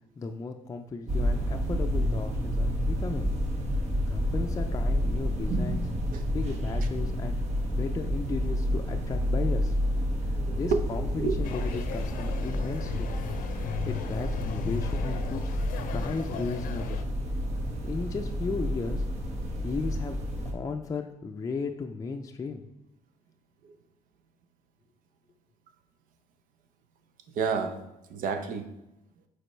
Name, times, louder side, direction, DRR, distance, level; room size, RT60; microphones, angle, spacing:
voice 1, 0.2-3.3 4.1-5.9 6.3-7.4 7.7-9.8 10.5-13.1 13.9-15.4 15.9-17.0 17.8-19.0 19.6-20.3 20.5-22.7, left 4 dB, 25° left, 4 dB, 0.4 m, -35 dB
sound 1, 1.1-20.5, equal, 55° right, 1.1 m, -29 dB
voice 2, 10.4-11.4 23.6-23.7 27.3-27.8 28.1-28.7, right 5 dB, 80° right, 6 dB, 0.7 m, -30 dB
sound 2, 11.4-17.0, left 8 dB, 80° left, 0.5 m, -37 dB
5.1 x 4.1 x 4.4 m, 0.90 s
cardioid pair, 110°, 14 cm